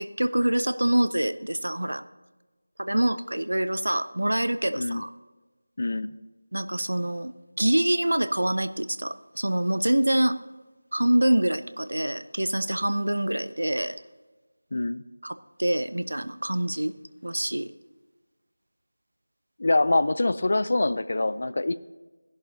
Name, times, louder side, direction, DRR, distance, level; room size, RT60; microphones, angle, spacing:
voice 1, 0.0-2.0 2.8-5.1 6.5-7.3 7.6-10.4 10.9-13.9 15.2-16.9 17.2-17.7, right 1 dB, 65° right, 13 dB, 0.6 m, -25 dB
voice 2, 5.8-6.1 14.7-15.0 19.6-21.8, left 2 dB, 40° left, 16 dB, 0.4 m, -24 dB
15.5 x 11.0 x 2.7 m, 1.2 s
figure-of-eight pair, 170°, 0 cm